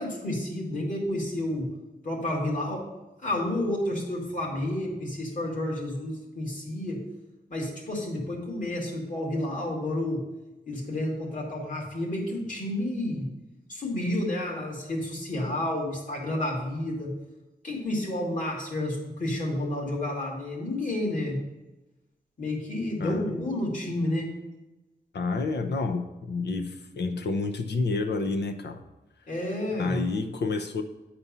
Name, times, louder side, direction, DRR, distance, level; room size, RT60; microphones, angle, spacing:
voice 1, 0.0-1.7 2.0-2.9 3.2-7.0 7.5-10.2 10.7-13.3 13.7-17.1 17.6-21.4 22.4-24.3 29.3-30.1, left 1 dB, 50° left, -2 dB, 2.5 m, -30 dB
voice 2, 25.1-28.8 29.8-30.8, left 3 dB, 85° left, 7 dB, 0.8 m, -29 dB
9.6 x 4.3 x 5.5 m, 1.1 s
wide cardioid pair, 120°, 17 cm